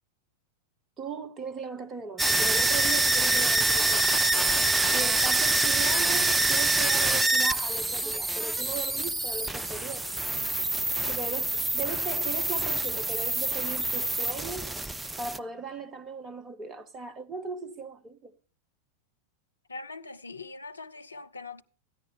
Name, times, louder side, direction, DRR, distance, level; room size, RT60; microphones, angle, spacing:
voice 1, 1.0-4.4 4.9-10.0 11.1-14.8 15.2-18.3, right 4 dB, 25° right, 0.9 m, -38 dB
sound 1, 2.2-15.4, right 2 dB, 5° right, 0.4 m, -26 dB
voice 2, 19.7-21.6, left 3 dB, 80° left, 0.5 m, -42 dB
14.0 x 9.8 x 3.3 m
figure-of-eight pair, 90°, 0 cm